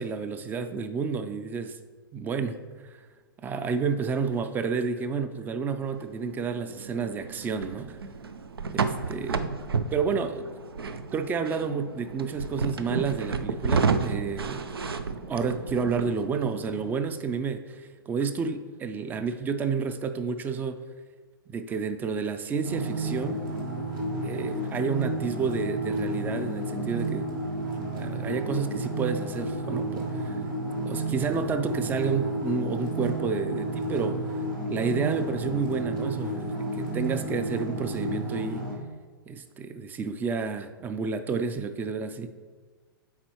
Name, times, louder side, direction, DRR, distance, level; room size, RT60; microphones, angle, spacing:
voice 1, 0.0-1.8 2.1-2.6 2.9-3.0 3.4-8.0 8.7-9.5 9.9-10.5 11.1-14.6 15.3-20.8 21.5-23.4 24.2-27.3 27.9-30.4 30.9-34.2 34.7-38.6 39.3-42.3, right 5 dB, 15° right, 9 dB, 0.4 m, -30 dB
sound 1, 5.8-16.9, right 4 dB, 85° right, 0.4 m, -32 dB
sound 2, 22.6-38.8, right 1 dB, 65° right, 1.5 m, -31 dB
7.3 x 4.5 x 3.0 m, 1.4 s
figure-of-eight pair, 115°, 12 cm